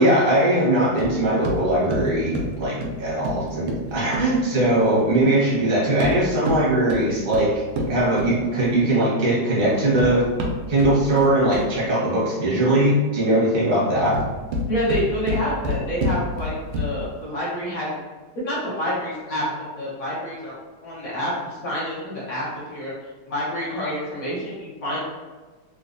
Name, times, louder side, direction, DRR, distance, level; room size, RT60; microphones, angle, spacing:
voice 1, 0.0-10.2 10.7-14.2, right 1 dB, 40° right, -7 dB, 0.8 m, -20 dB
sound 1, 1.0-5.2 5.9-8.9 9.7-11.9 13.9-17.2, equal, 80° right, 1.4 m, -29 dB
voice 2, 14.6-18.0 18.3-19.5 19.8-20.5 20.8-22.9 23.3-25.0, equal, 50° left, -8 dB, 1.1 m, -28 dB
4.0 x 2.4 x 2.5 m, 1.3 s
omnidirectional pair, 2.4 m